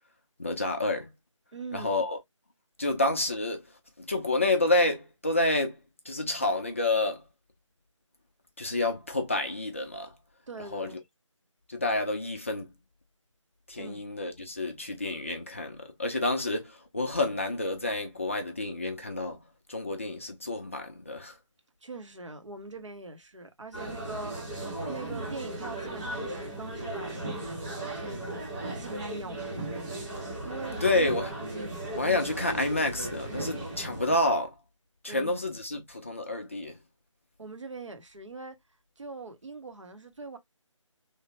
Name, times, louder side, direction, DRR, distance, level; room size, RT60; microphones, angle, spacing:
voice 1, 0.4-1.1 1.7-2.2 2.8-3.7 4.0-5.8 6.1-7.2 8.6-10.1 10.7-11.0 11.7-12.7 13.7-19.4 19.7-21.4 30.8-31.4 32.0-34.5 35.0-36.8, left 2 dB, 25° left, 0.4 m, -29 dB
voice 2, 1.5-1.9 10.5-11.0 13.8-14.0 21.8-24.6 24.9-28.2 28.8-30.0 30.4-30.8 31.5-31.8 35.1-35.3 37.4-38.5 39.0-40.4, right 3 dB, 65° right, 0.8 m, -42 dB
sound 1, 23.7-34.2, right 2 dB, 10° right, 1.0 m, -36 dB
3.2 x 2.1 x 2.8 m
figure-of-eight pair, 155°, 17 cm